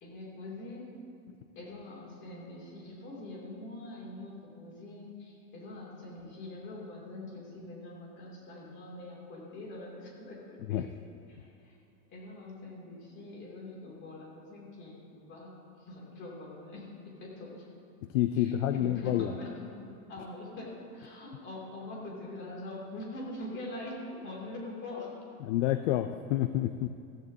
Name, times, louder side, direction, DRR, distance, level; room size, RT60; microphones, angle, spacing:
voice 1, 0.0-0.9 1.5-10.8 11.3-11.7 12.1-17.7 18.3-19.8 20.1-25.1, left 2 dB, 25° left, -3 dB, 2.8 m, -44 dB
voice 2, 18.1-19.3 25.4-26.9, left 12 dB, 55° left, 9 dB, 0.5 m, -28 dB
15.0 x 14.5 x 2.8 m, 2.6 s
supercardioid pair, 155°, 46 cm